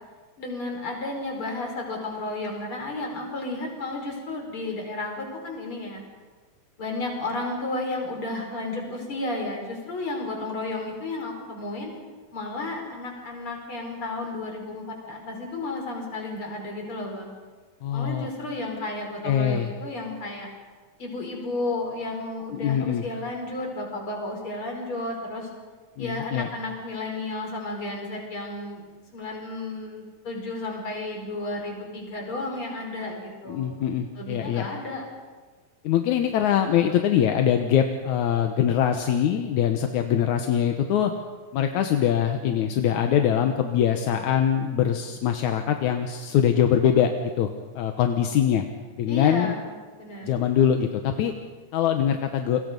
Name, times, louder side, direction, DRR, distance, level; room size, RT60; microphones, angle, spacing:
voice 1, 0.4-6.0 6.8-11.9 12.3-17.4 17.9-20.5 21.0-25.5 26.0-28.8 29.1-33.7 34.2-35.1 49.1-49.7 50.0-50.3, left 2 dB, 35° left, 1 dB, 5.7 m, -32 dB
voice 2, 17.8-18.3 19.2-19.7 22.5-23.0 26.0-26.5 33.5-34.7 35.8-41.1 41.5-47.5 47.8-48.6 49.0-49.5 50.2-51.3 51.7-52.6, left 9 dB, 65° left, 5 dB, 2.1 m, -23 dB
29.5 x 23.5 x 5.3 m, 1.4 s
omnidirectional pair, 4.3 m